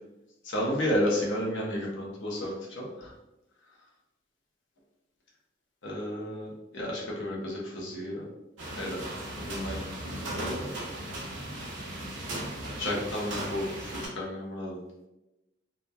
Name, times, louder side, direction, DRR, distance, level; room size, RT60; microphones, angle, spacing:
voice 1, 0.4-3.1 5.8-6.5 6.7-8.2 8.7-9.1 9.3-10.7 12.8-14.8, left 1 dB, 80° left, -3 dB, 0.7 m, -32 dB
sound 1, 8.6-14.1, right 1 dB, 85° right, 0.8 m, -37 dB
2.9 x 2.2 x 2.2 m, 0.95 s
head